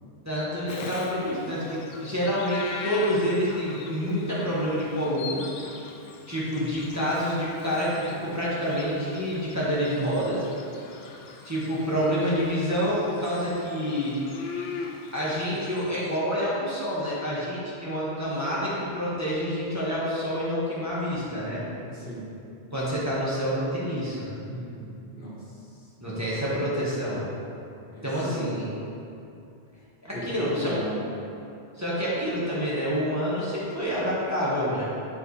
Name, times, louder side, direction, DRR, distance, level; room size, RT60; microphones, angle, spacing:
voice 1, 0.2-5.4 6.3-10.5 11.4-14.1 15.1-21.6 22.7-24.3 26.0-27.2 28.0-28.7 30.0-30.8 31.8-34.8, equal, 15° right, -9 dB, 1.6 m, -27 dB
Bird vocalization bird call bird song, 0.7-16.2, left 4 dB, 75° left, 0.9 m, -42 dB
voice 2, 21.9-22.3 24.4-25.4 27.9-28.8 30.1-31.0, equal, 55° left, -8 dB, 1.9 m, -36 dB
11.5 x 4.8 x 3.3 m, 2.6 s
omnidirectional pair, 1.1 m